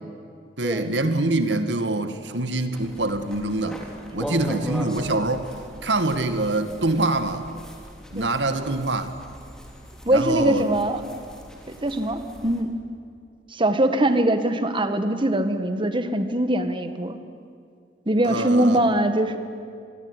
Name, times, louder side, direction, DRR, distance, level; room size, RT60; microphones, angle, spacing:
voice 1, 0.6-3.8 4.1-5.5 5.8-7.5 8.1-9.1 10.1-10.7 18.2-18.9, right 2 dB, 90° right, 9 dB, 2.0 m, -25 dB
sound 1, 2.7-12.6, left 1 dB, 5° left, 3.7 m, -39 dB
voice 2, 10.1-11.0 11.7-12.7 13.5-17.2 18.1-19.4, right 1 dB, 30° right, 9 dB, 1.8 m, -22 dB
25.5 x 22.0 x 9.9 m, 2.3 s
head